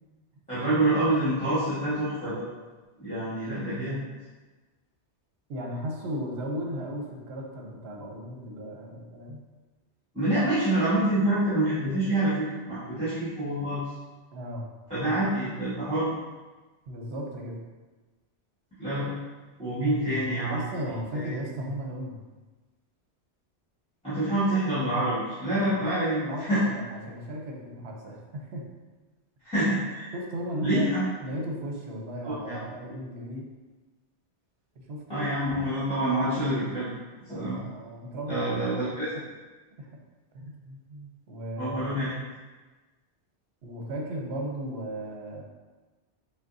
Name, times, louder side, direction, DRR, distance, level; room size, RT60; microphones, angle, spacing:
voice 1, 0.5-2.4 3.0-4.0 10.1-13.8 14.9-16.1 18.8-19.1 19.6-20.6 21.1-21.3 24.0-26.2 26.5-26.6 29.4-30.1 30.6-31.0 32.2-32.6 35.1-36.9 37.2-37.6 38.3-39.1 41.6-42.1, right 1 dB, 5° left, -14 dB, 1.4 m, -27 dB
voice 2, 5.5-9.4 14.3-14.7 15.0-15.4 16.9-17.6 19.8-22.2 25.6-28.7 30.1-33.5 34.9-35.2 37.3-39.0 39.8-39.9 40.3-42.0 43.6-45.4, equal, 70° right, 0 dB, 0.9 m, -36 dB
6.1 x 2.2 x 2.6 m, 1.2 s
omnidirectional pair, 1.2 m